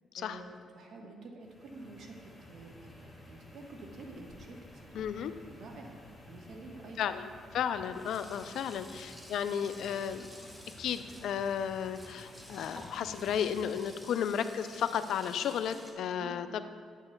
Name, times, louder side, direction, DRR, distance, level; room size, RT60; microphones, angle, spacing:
voice 1, 0.1-5.0 5.5-5.9 6.3-7.0 14.0-14.2 16.1-16.4, right 2 dB, 65° right, 1 dB, 1.1 m, -49 dB
sound 1, 1.4-14.0, left 1 dB, 15° left, 1.5 m, -54 dB
Sink (filling or washing), 3.4-6.5 7.3-7.4 7.6-15.9, equal, 5° right, 1.1 m, -52 dB
voice 2, 4.9-5.3 7.0-10.3 10.7-16.6, left 8 dB, 75° left, 11 dB, 0.3 m, -33 dB
8.8 x 8.3 x 2.2 m, 2.1 s
cardioid pair, 90°, 0 cm